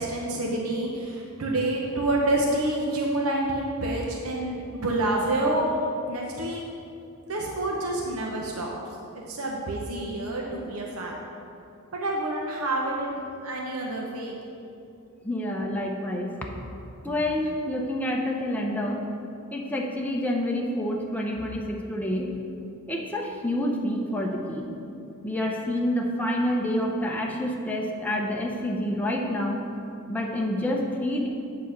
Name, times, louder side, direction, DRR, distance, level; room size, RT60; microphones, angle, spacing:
voice 1, 0.0-5.7 6.1-6.6 7.3-8.7 9.1-11.1 11.9-14.4, right 1 dB, 85° right, -1 dB, 0.9 m, -28 dB
voice 2, 15.2-16.3 17.0-19.0 19.5-22.3 22.9-24.8 25.2-29.6 30.1-31.3, left 1 dB, 10° left, -1 dB, 0.6 m, -28 dB
8.2 x 4.0 x 6.4 m, 2.6 s
head